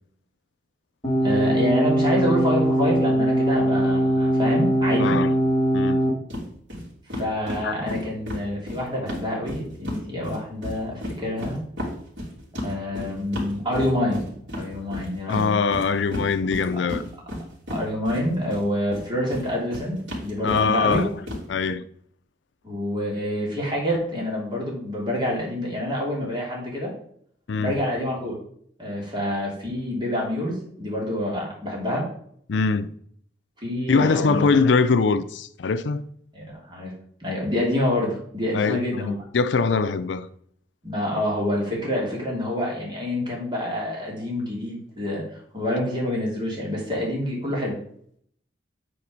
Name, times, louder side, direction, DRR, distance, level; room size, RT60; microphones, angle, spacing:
sound 1, 1.0-6.1, right 1 dB, 20° left, 1.9 m, -21 dB
voice 1, 1.2-5.2 7.1-11.6 12.6-14.2 14.6-15.6 16.7-16.9 17.7-21.0 22.6-26.9 27.6-28.3 28.8-32.1 33.6-34.5 36.3-36.9 37.2-39.2 40.8-45.2 45.5-47.8, left 1 dB, 25° right, 2.8 m, -27 dB
voice 2, 5.0-5.3 5.7-6.1 7.6-7.7 15.3-17.0 20.4-21.1 21.5-21.9 27.5-27.8 32.5-32.9 33.9-36.0 38.5-40.3, left 4 dB, 80° left, 0.5 m, -22 dB
sound 2, 6.3-6.4 6.7-6.8 7.1-10.0 10.2-18.6 18.9-21.4, left 1 dB, 85° right, 3.2 m, -33 dB
8.6 x 4.3 x 5.1 m
head